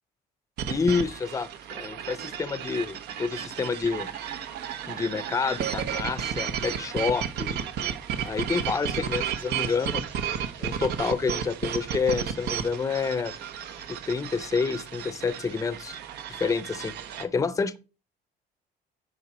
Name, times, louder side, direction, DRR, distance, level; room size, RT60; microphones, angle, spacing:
sound 1, 0.6-17.2, right 8 dB, 80° right, 1.0 m, -33 dB
voice 1, 0.7-1.5 1.7-4.1 4.9-7.6 8.3-10.0 10.6-13.3 13.9-16.0 16.3-16.9 17.2-17.8, left 5 dB, 20° left, 0.5 m, -28 dB
10.0 x 4.9 x 4.1 m
cardioid pair, 110°, 17 cm